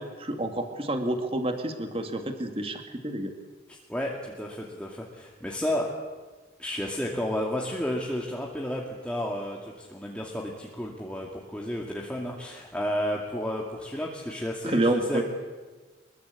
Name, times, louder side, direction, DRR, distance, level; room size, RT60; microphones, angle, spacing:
voice 1, 0.0-3.3 14.6-15.2, right 1 dB, 30° right, 5 dB, 2.3 m, -28 dB
voice 2, 3.7-5.9 6.6-15.2, left 1 dB, 5° left, -2 dB, 2.4 m, -32 dB
25.0 x 22.0 x 8.4 m, 1.3 s
head